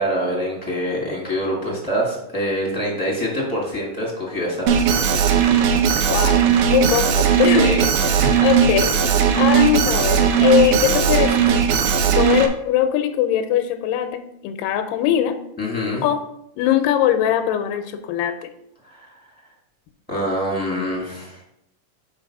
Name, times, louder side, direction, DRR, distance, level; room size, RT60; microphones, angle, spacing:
voice 1, 0.0-5.3 5.7-5.9 7.5-8.4 15.6-16.0 18.8-19.1 20.1-21.4, equal, 10° left, -5 dB, 0.6 m, -25 dB
Alarm, 4.7-12.5, right 8 dB, 80° right, 2.3 m, -17 dB
voice 2, 6.1-6.4 6.7-7.7 8.4-8.9 9.4-11.6 12.2-15.4 16.0-16.2 16.6-18.5, left 11 dB, 85° left, 8 dB, 2.3 m, -20 dB
5.6 x 4.6 x 5.9 m, 0.77 s
omnidirectional pair, 3.8 m